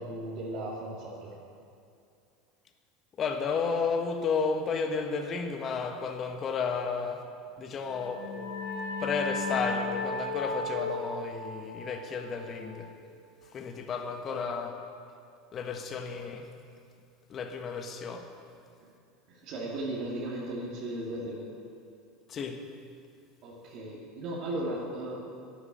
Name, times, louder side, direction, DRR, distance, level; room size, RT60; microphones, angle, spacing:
voice 1, 0.0-1.3 14.3-14.5 18.8-18.9 19.3-21.5 23.4-25.3, right 1 dB, 55° right, -6 dB, 2.5 m, -36 dB
voice 2, 3.2-7.2 7.6-8.4 9.0-12.9 13.5-14.7 15.5-16.5 17.3-18.3 22.3-22.6, left 5 dB, 40° left, 5 dB, 1.3 m, -32 dB
sound 1, 7.8-13.2, left 3 dB, 70° left, 2.5 m, -35 dB
11.0 x 10.0 x 7.7 m, 2.4 s
hypercardioid pair, 90°, 0 cm